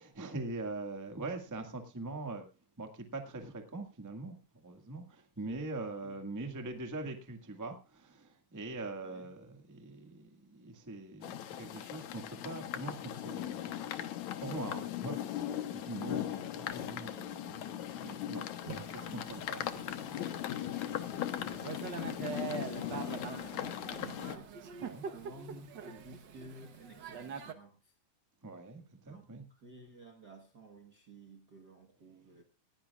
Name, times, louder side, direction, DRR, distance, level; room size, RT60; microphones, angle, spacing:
voice 1, 0.0-2.4 2.8-14.0 14.4-20.5 24.8-25.0 28.4-29.5, right 2 dB, 10° right, 0.9 m, -43 dB
sound 1, 11.2-24.4, left 11 dB, 70° left, 2.2 m, -39 dB
voice 2, 16.1-17.2 21.2-24.5 24.9-27.9 29.0-32.4, right 1 dB, 50° right, 1.3 m, -54 dB
Thunder / Rain, 18.6-27.5, right 6 dB, 75° right, 1.0 m, -44 dB
19.5 x 16.0 x 2.4 m
omnidirectional pair, 3.8 m